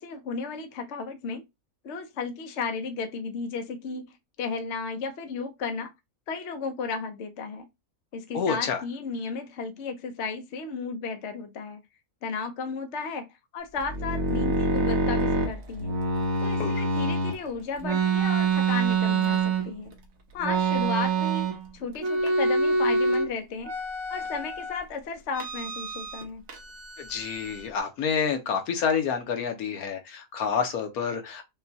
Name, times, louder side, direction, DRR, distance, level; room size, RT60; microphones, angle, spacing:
voice 1, 0.0-1.4 1.8-5.9 6.3-7.7 8.1-11.8 12.2-13.3 13.5-16.0 16.4-19.9 20.3-23.7 24.1-26.4, left 4 dB, 60° left, 0.9 m, -34 dB
voice 2, 8.3-8.8 16.6-16.8 27.0-31.4, left 6 dB, 75° left, 1.3 m, -28 dB
sound 1, 13.8-17.4 17.8-19.9 20.4-21.7 22.0-23.3 23.6-24.8 25.3-26.2 26.5-27.7, right 3 dB, 65° right, 1.3 m, -26 dB
5.8 x 2.2 x 2.7 m
omnidirectional pair, 1.6 m